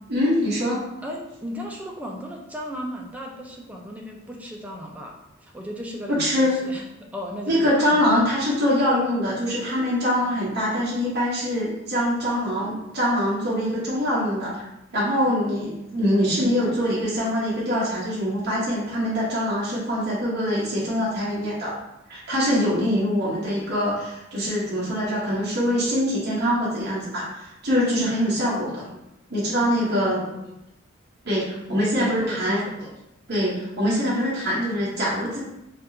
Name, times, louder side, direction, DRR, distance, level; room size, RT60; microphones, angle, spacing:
voice 1, 0.1-0.9 6.1-6.5 7.5-14.7 14.9-21.8 22.1-28.9 29.3-30.2 31.2-32.6 33.3-35.4, equal, 50° right, -7 dB, 0.9 m, -24 dB
voice 2, 1.0-8.0 30.0-30.5 31.8-33.0, equal, 5° right, 0 dB, 0.3 m, -36 dB
3.4 x 2.3 x 2.7 m, 0.87 s
head